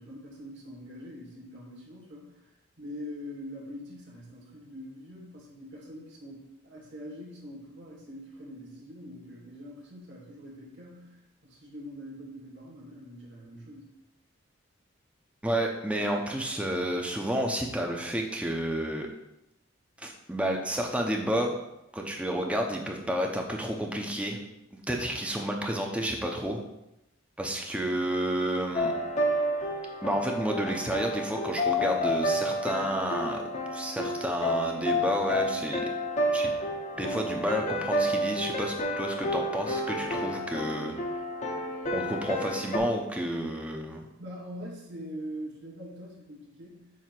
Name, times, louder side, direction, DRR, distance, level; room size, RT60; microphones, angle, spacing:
voice 1, 0.0-2.4 2.8-11.2 11.4-13.9 44.2-46.9, equal, 60° right, -4 dB, 2.2 m, -43 dB
voice 2, 15.4-19.1 20.0-21.6 21.9-24.4 24.9-26.6 27.4-28.9 30.0-33.4 33.7-35.8 36.3-36.5 36.9-40.9 41.9-44.1, right 1 dB, 5° right, 2 dB, 0.7 m, -30 dB
sound 1, 28.7-42.8, left 1 dB, 35° left, 0.8 m, -30 dB
7.4 x 2.9 x 5.9 m, 0.88 s
head